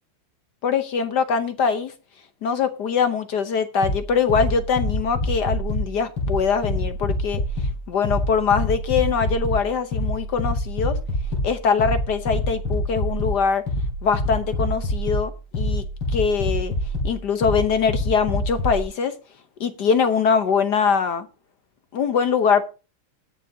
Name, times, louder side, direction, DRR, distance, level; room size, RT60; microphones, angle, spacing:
voice 1, 0.6-1.9 2.4-7.4 7.9-11.0 11.4-13.6 14.0-15.8 16.1-16.7 17.0-19.1 19.6-21.3 21.9-22.6, left 6 dB, 60° left, 1.3 m, -22 dB
sound 1, 3.8-18.8, left 1 dB, 80° left, 6.1 m, -26 dB
20.0 x 6.9 x 2.8 m
omnidirectional pair, 2.4 m